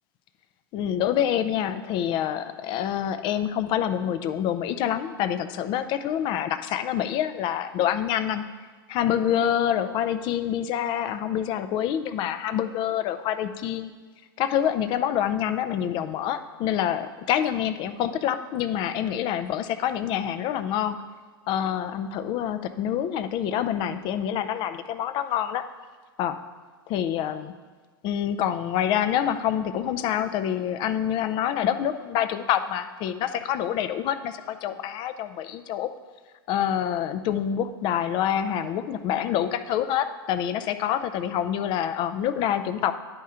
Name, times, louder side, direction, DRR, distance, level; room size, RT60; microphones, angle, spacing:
voice 1, 0.7-8.4 8.9-13.9 14.4-21.0 21.5-25.6 26.2-26.4 26.9-27.5 28.0-35.9 36.5-42.9, left 10 dB, 35° left, 11 dB, 0.4 m, -26 dB
10.5 x 4.3 x 3.7 m, 1.5 s
hypercardioid pair, 120°, 13 cm